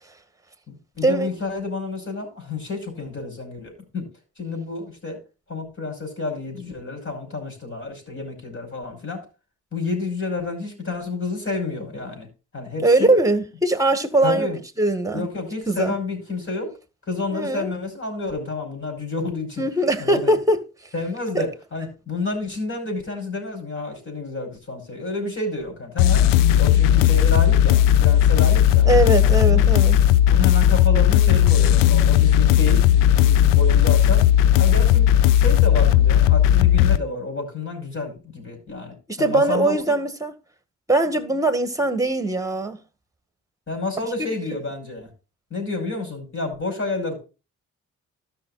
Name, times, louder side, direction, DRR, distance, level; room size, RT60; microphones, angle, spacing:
voice 1, 0.7-4.1 4.4-5.2 5.5-9.2 9.7-12.3 12.5-13.1 14.2-14.6 15.1-16.7 17.1-19.7 20.0-20.4 20.9-26.3 26.6-28.9 29.2-29.6 30.3-32.8 33.2-34.3 34.6-35.1 35.4-39.8 43.7-45.1 45.5-47.2, left 3 dB, 45° left, 5.2 m, -29 dB
voice 2, 12.8-14.5 14.8-15.3 15.7-15.9 17.3-17.7 19.6-20.6 21.3-21.4 28.9-30.0 39.1-40.3 40.9-42.8 44.2-44.3, right 2 dB, 10° right, 1.8 m, -21 dB
sound 1, 26.0-37.0, left 11 dB, 85° left, 0.6 m, -16 dB
13.0 x 6.0 x 4.0 m
supercardioid pair, 55°, 32 cm